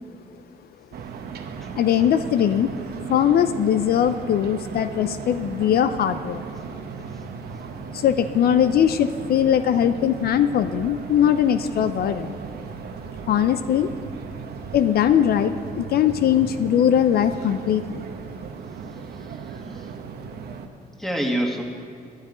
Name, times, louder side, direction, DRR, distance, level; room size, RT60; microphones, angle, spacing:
sound 1, 0.9-20.7, right 6 dB, 70° right, 1.0 m, -36 dB
voice 1, 1.8-2.7 3.1-6.4 7.9-12.4 13.3-13.9 14.7-18.0, left 9 dB, 70° left, 11 dB, 0.5 m, -20 dB
voice 2, 18.9-19.9 21.0-21.6, right 1 dB, ahead, 1 dB, 1.8 m, -28 dB
13.0 x 11.5 x 5.0 m, 2.3 s
cardioid pair, 90°, 17 cm